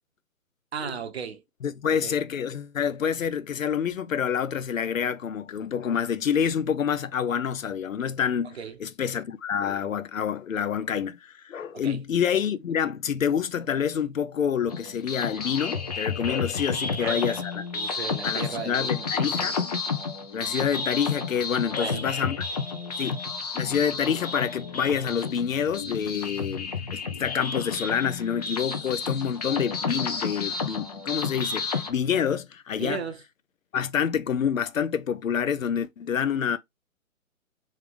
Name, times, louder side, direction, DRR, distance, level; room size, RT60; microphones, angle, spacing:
voice 1, 0.7-1.4 1.8-2.2 8.4-8.8 11.7-12.0 16.8-17.4 17.7-19.6 21.8-22.2 32.8-33.2, right 7 dB, 50° right, 0.9 m, -36 dB
voice 2, 1.6-17.6 18.2-19.6 20.3-22.4 23.0-23.2 23.5-33.0 33.7-36.6, left 8 dB, 65° left, 0.7 m, -27 dB
sound 1, 14.7-31.9, left 5 dB, 30° left, 0.6 m, -31 dB
3.6 x 3.2 x 3.5 m
figure-of-eight pair, 145°, 43 cm